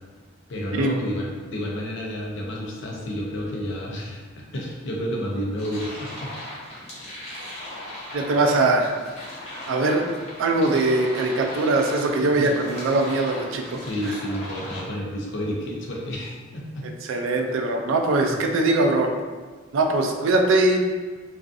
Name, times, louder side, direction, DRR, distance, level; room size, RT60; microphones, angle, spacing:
voice 1, 0.5-6.3 12.1-13.0 13.7-16.8 18.2-18.4, equal, 65° left, -2 dB, 0.5 m, -31 dB
sound 1, 5.6-14.8, left 1 dB, 35° left, 0.8 m, -38 dB
voice 2, 8.1-9.0 9.7-10.0 10.4-13.9 17.1-19.1 19.7-20.8, right 2 dB, 80° right, 4 dB, 0.3 m, -21 dB
2.4 x 2.4 x 2.5 m, 1.4 s
head